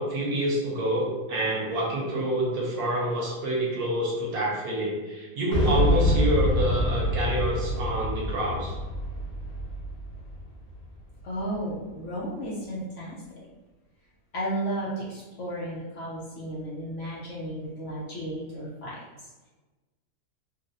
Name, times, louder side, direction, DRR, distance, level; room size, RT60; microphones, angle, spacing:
voice 1, 0.0-8.8, right 1 dB, 70° right, -3 dB, 1.2 m, -27 dB
Boom, 5.5-11.4, left 1 dB, 40° left, 1.2 m, -26 dB
voice 2, 11.2-13.5 14.3-19.0, right 1 dB, 60° left, -6 dB, 0.8 m, -33 dB
4.0 x 2.0 x 2.6 m, 1.2 s
omnidirectional pair, 1.7 m